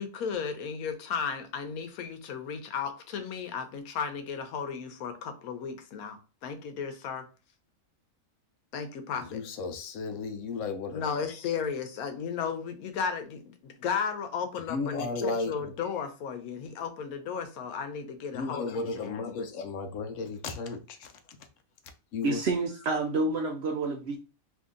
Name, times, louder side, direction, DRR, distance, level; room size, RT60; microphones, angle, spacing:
voice 1, 0.0-7.2 8.7-9.4 10.9-19.4, left 6 dB, 90° left, 1.1 m, -34 dB
voice 2, 9.2-11.3 14.7-15.9 18.3-21.1 22.1-22.4, left 4 dB, 70° left, 0.9 m, -34 dB
voice 3, 22.2-24.2, right 3 dB, 65° right, 0.7 m, -28 dB
2.9 x 2.7 x 3.6 m
omnidirectional pair, 1.5 m